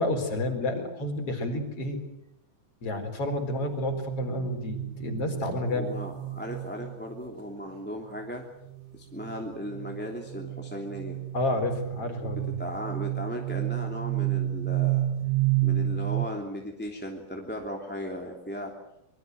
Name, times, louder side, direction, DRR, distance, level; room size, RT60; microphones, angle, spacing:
voice 1, 0.0-2.0 2.8-5.9 11.3-12.5, left 2 dB, 40° left, 5 dB, 5.0 m, -30 dB
sound 1, 3.3-7.2 8.7-16.3, right 14 dB, 50° right, 2.0 m, -31 dB
voice 2, 5.7-8.4 8.9-11.2 12.2-15.1 15.6-18.7, equal, 5° left, 0 dB, 2.4 m, -37 dB
26.0 x 23.0 x 8.0 m, 0.83 s
omnidirectional pair, 4.1 m